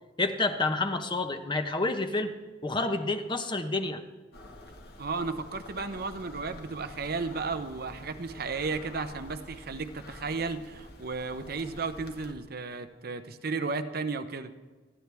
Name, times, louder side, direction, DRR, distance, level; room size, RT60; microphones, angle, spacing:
voice 1, 0.2-2.3 2.6-4.0, left 2 dB, 25° left, 7 dB, 1.0 m, -29 dB
sound 1, 4.3-12.3, left 1 dB, 60° left, 1.8 m, -48 dB
voice 2, 5.0-14.5, right 4 dB, 55° right, 9 dB, 0.8 m, -34 dB
28.5 x 11.0 x 3.5 m, 1.3 s
head